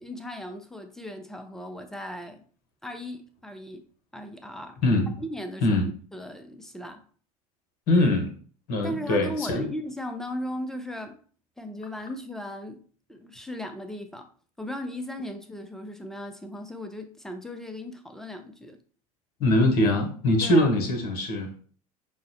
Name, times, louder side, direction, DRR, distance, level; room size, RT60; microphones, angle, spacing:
voice 1, 0.0-2.4 2.8-3.9 4.1-4.8 5.2-5.8 6.1-7.0 8.8-11.2 11.6-14.3 14.6-18.8 20.4-20.7, left 1 dB, ahead, 0.5 m, -37 dB
voice 2, 4.8-5.1 5.6-5.9 7.9-8.3 8.7-9.7 19.4-21.5, left 1 dB, 50° left, 1.0 m, -22 dB
5.5 x 2.1 x 2.6 m
figure-of-eight pair, 70°, 19 cm